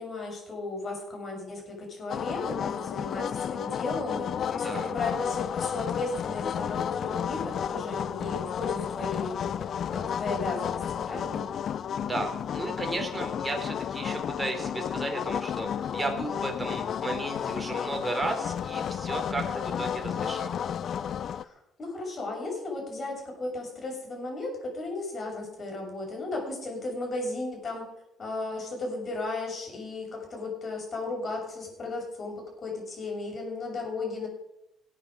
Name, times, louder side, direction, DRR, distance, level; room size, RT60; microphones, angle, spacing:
voice 1, 0.0-4.3 4.6-11.5 21.3-27.9 28.2-34.3, left 2 dB, 45° left, 0 dB, 6.6 m, -35 dB
sound 1, 2.1-21.4, left 8 dB, 60° left, 0.5 m, -32 dB
voice 2, 4.5-4.9 12.0-20.6, right 2 dB, 15° right, 3 dB, 3.9 m, -34 dB
19.5 x 9.1 x 5.0 m, 0.86 s
cardioid pair, 80°, 0 cm